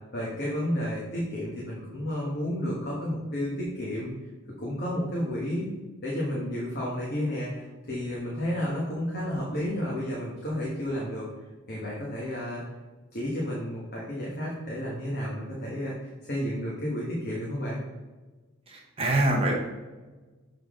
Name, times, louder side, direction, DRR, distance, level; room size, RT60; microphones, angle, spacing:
voice 1, 0.1-4.1 4.6-5.7 6.0-11.3 11.7-12.6 13.1-17.8, equal, 50° left, -5 dB, 1.3 m, -31 dB
voice 2, 18.7-19.5, right 1 dB, 25° right, -1 dB, 0.9 m, -25 dB
6.9 x 3.9 x 3.6 m, 1.3 s
head